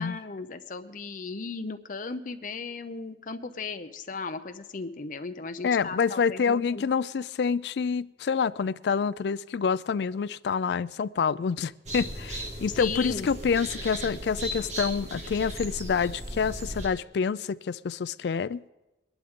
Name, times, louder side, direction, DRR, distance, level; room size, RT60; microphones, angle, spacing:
voice 1, 0.0-6.9 12.7-13.3, left 4 dB, 50° left, 0.7 m, -36 dB
voice 2, 5.6-18.6, left 6 dB, 70° left, 0.4 m, -27 dB
sound 1, 11.8-16.9, right 1 dB, 40° right, 2.1 m, -36 dB
22.0 x 11.5 x 3.7 m
head